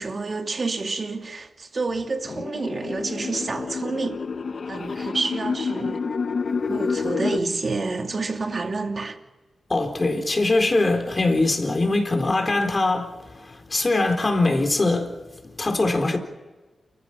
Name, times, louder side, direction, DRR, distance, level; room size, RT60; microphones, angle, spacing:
voice 1, 0.0-4.2 4.7-6.0 6.7-9.2, right 3 dB, 45° right, 2.7 m, -28 dB
sound 1, 2.2-7.4, left 5 dB, 55° left, 1.1 m, -28 dB
voice 2, 9.7-16.2, left 2 dB, 35° left, 4.1 m, -22 dB
29.0 x 15.0 x 7.4 m
cardioid pair, 85°, 0 cm